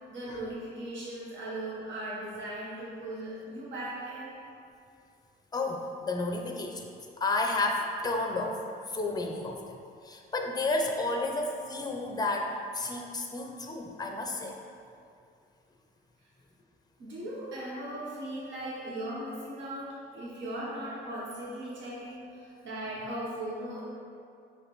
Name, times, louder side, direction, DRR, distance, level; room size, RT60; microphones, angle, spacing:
voice 1, 0.1-4.3 17.0-23.8, right 1 dB, 70° right, -6 dB, 1.0 m, -38 dB
voice 2, 5.5-6.9 7.2-8.6 8.9-9.8 10.0-14.6 22.6-22.7, left 2 dB, 20° left, 2 dB, 0.5 m, -31 dB
5.0 x 3.2 x 3.0 m, 2.4 s
cardioid pair, 90°, 20 cm